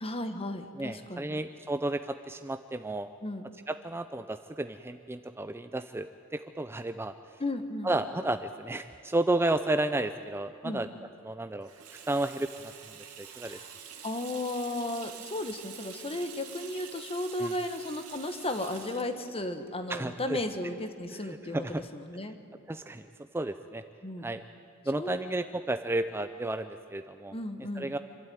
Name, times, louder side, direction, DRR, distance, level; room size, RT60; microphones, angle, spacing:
voice 1, 0.0-1.4 3.2-3.5 7.4-7.9 10.6-10.8 13.4-13.7 14.0-22.4 24.0-24.3 25.0-25.2 27.3-27.9, left 1 dB, 25° left, 8 dB, 1.3 m, -35 dB
voice 2, 0.8-3.1 3.7-7.4 7.8-10.9 11.2-11.7 12.1-13.6 17.4-17.5 19.9-20.4 21.1-21.8 22.7-23.1 23.3-23.8 24.2-24.4 24.8-27.3 27.8-28.0, right 2 dB, 10° right, 9 dB, 0.4 m, -32 dB
Water tap faucet / Sink (filling or washing), 11.6-20.9, right 8 dB, 80° right, 2.5 m, -47 dB
26.5 x 12.5 x 9.3 m, 2.4 s
head